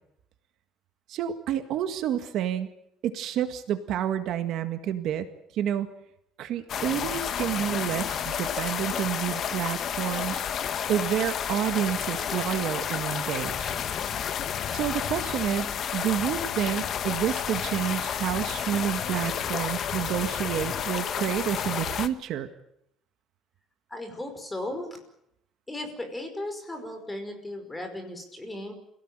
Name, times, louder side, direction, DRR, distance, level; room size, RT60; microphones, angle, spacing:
voice 1, 1.1-2.7 3.0-5.3 5.5-5.9 6.4-10.5 10.9-13.8 14.7-22.5, right 10 dB, 55° right, 8 dB, 1.8 m, -29 dB
sound 1, 6.7-22.1, left 8 dB, 40° left, 1.4 m, -31 dB
voice 2, 23.9-24.9 25.7-28.7, left 1 dB, 10° left, 5 dB, 5.1 m, -36 dB
27.0 x 17.5 x 9.0 m, 0.79 s
cardioid pair, 155°, 0 cm